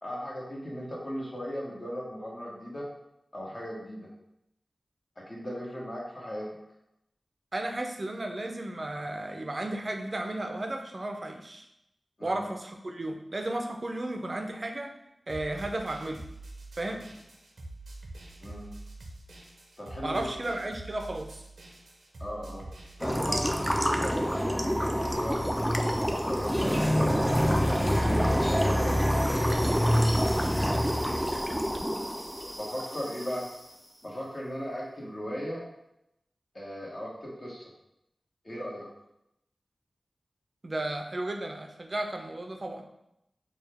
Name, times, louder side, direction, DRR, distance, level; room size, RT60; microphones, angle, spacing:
voice 1, 0.0-2.9 3.3-4.1 5.3-6.5 12.2-12.4 16.9-17.0 18.4-18.6 19.8-20.6 22.2-22.6 23.0-25.5 26.2-29.3 32.6-33.5 34.0-35.6 36.5-37.7 38.4-38.9, equal, 45° left, -5 dB, 1.5 m, -37 dB
voice 2, 7.5-11.7 12.2-14.9 15.3-16.2 16.8-17.0 20.0-21.3 40.6-42.9, right 1 dB, 50° right, 4 dB, 0.5 m, -34 dB
sound 1, 15.3-24.4, right 2 dB, 85° right, 0.7 m, -45 dB
sound 2, 23.0-33.4, equal, ahead, 0.5 m, -26 dB
4.6 x 2.3 x 3.4 m, 0.82 s
cardioid pair, 45°, 0 cm